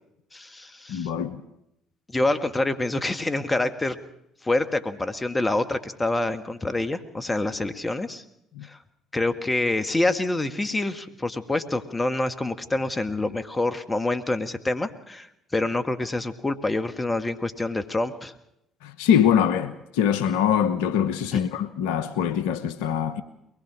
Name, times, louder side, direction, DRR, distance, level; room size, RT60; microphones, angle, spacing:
voice 1, 0.3-1.1 2.1-4.0 4.4-8.2 8.6-8.8 9.1-18.3 21.3-21.4, left 2 dB, 20° left, 1.7 m, -26 dB
voice 2, 0.9-1.4 8.6-8.7 18.8-23.2, left 9 dB, 75° left, 0.9 m, -23 dB
22.5 x 20.0 x 6.2 m
hypercardioid pair, 55°, 0 cm